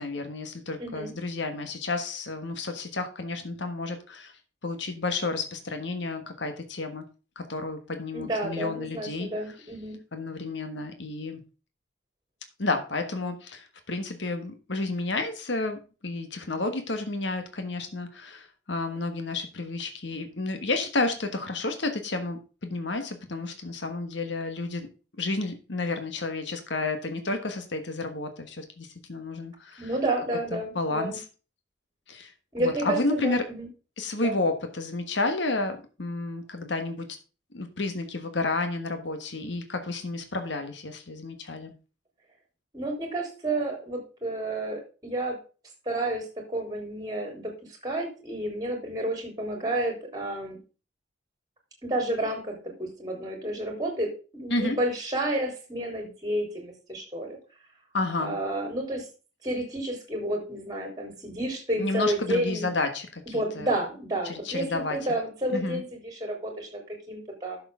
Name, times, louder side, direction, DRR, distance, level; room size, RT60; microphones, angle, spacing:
voice 1, 0.0-4.3 4.6-7.0 7.3-9.3 10.1-11.4 12.6-24.9 25.2-29.9 30.5-31.2 32.1-32.3 32.6-33.4 34.0-37.1 37.5-41.7 54.5-54.8 57.9-58.4 61.8-63.7 64.2-65.0 65.5-65.8, left 3 dB, 70° left, 7 dB, 1.4 m, -31 dB
voice 2, 0.8-1.1 8.1-10.0 29.8-31.2 32.5-33.7 34.2-34.4 42.7-45.4 45.9-50.6 51.8-57.4 58.2-59.1 59.4-62.7 63.3-67.6, right 1 dB, 20° right, 3 dB, 3.5 m, -30 dB
11.5 x 6.7 x 3.6 m, 0.34 s
head